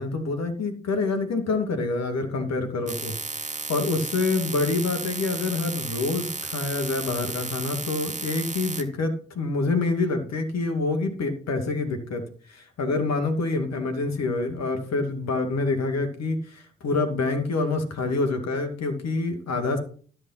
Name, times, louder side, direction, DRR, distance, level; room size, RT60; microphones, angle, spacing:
voice 1, 0.0-12.2 12.5-19.8, left 3 dB, 60° left, 6 dB, 2.5 m, -27 dB
sound 1, 2.9-8.8, right 3 dB, 25° right, 1.7 m, -33 dB
13.0 x 5.6 x 5.8 m, 0.43 s
hypercardioid pair, 45°, 31 cm